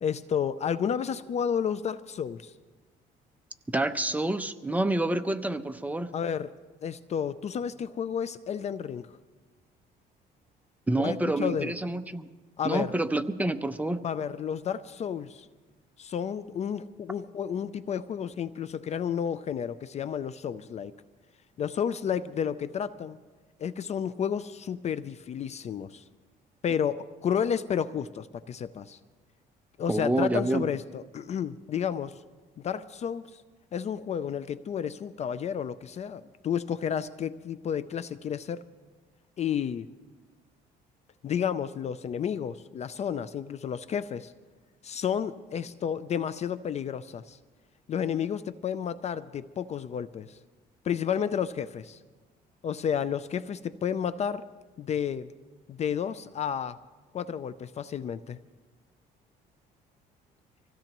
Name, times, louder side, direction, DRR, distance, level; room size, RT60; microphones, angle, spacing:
voice 1, 0.0-2.5 6.1-6.5 6.8-9.1 11.0-11.7 12.6-12.9 14.0-15.5 16.0-20.9 21.6-23.2 23.6-26.0 26.6-29.0 29.8-32.2 32.6-33.4 33.7-38.6 39.4-39.9 41.2-44.3 44.8-47.4 47.9-50.4 50.8-52.0 52.6-54.5 54.8-55.3 55.7-56.8 57.1-58.4, left 8 dB, 40° left, 15 dB, 0.4 m, -31 dB
voice 2, 3.7-6.1 10.9-12.3 12.6-14.0 29.9-30.7, right 2 dB, 10° right, 9 dB, 0.7 m, -28 dB
25.0 x 16.5 x 3.0 m, 1.3 s
cardioid pair, 110°, 17 cm